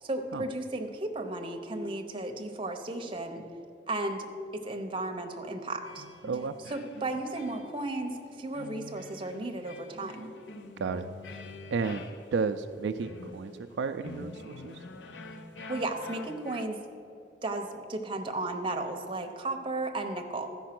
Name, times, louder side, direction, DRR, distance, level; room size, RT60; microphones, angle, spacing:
voice 1, 0.0-3.4 3.9-4.3 4.5-6.0 6.7-10.3 15.7-16.8 17.4-20.5, right 2 dB, 30° right, 4 dB, 0.8 m, -34 dB
sound 1, 5.8-16.6, left 2 dB, 85° left, 0.7 m, -47 dB
voice 2, 6.2-6.6 10.8-11.1 11.7-14.8, right 4 dB, 75° right, 7 dB, 0.4 m, -32 dB
13.0 x 5.4 x 5.9 m, 2.6 s
head